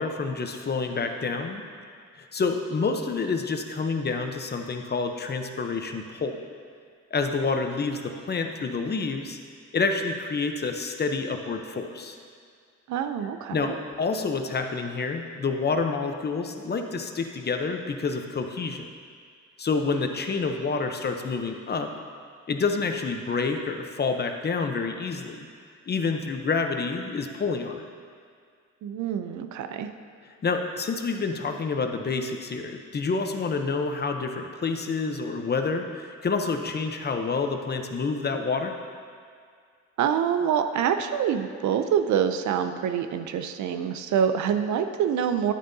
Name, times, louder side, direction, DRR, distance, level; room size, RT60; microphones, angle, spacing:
voice 1, 0.0-1.6 2.2-6.4 7.1-9.4 9.7-12.2 13.5-18.9 19.6-21.9 22.5-25.5 25.9-27.8 30.4-38.7, left 4 dB, 35° left, 5 dB, 0.8 m, -28 dB
voice 2, 12.9-13.7 28.8-29.9 40.0-45.5, right 8 dB, 70° right, 8 dB, 0.6 m, -26 dB
10.5 x 9.1 x 2.7 m, 2.1 s
cardioid pair, 90°, 30 cm